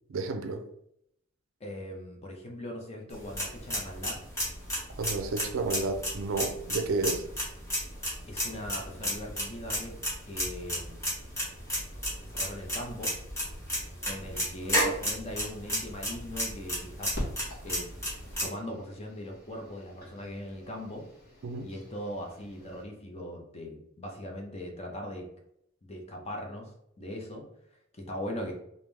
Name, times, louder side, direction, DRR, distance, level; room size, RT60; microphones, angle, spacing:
voice 1, 0.1-0.6 5.0-7.2 21.4-21.7, right 3 dB, 75° right, 0.5 m, -31 dB
voice 2, 1.6-4.2 8.3-10.0 10.3-11.0 12.2-13.1 14.0-17.1 17.6-17.9 18.4-21.1 21.6-25.3 25.8-26.7 27.0-27.4 28.0-28.5, left 1 dB, 30° left, 0.7 m, -40 dB
sound 1, 3.1-18.4, equal, 15° left, 1.4 m, -33 dB
sound 2, 17.1-22.8, equal, 50° left, 1.4 m, -44 dB
3.5 x 2.6 x 3.3 m
head